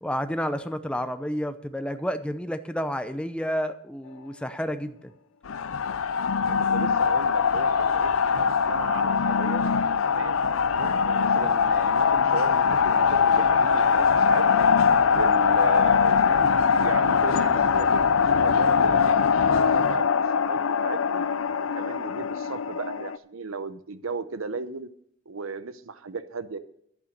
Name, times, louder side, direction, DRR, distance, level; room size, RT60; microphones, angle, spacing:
voice 1, 0.0-5.1, equal, 5° left, 10 dB, 0.6 m, -30 dB
sound 1, 5.5-23.2, left 6 dB, 80° left, 0.5 m, -22 dB
voice 2, 6.5-9.6 10.0-10.4 10.7-14.7 15.1-19.0 19.4-20.2 20.5-21.3 21.7-24.9 25.3-26.6, right 4 dB, 80° right, 13 dB, 0.8 m, -36 dB
11.0 x 8.5 x 6.5 m, 0.72 s
head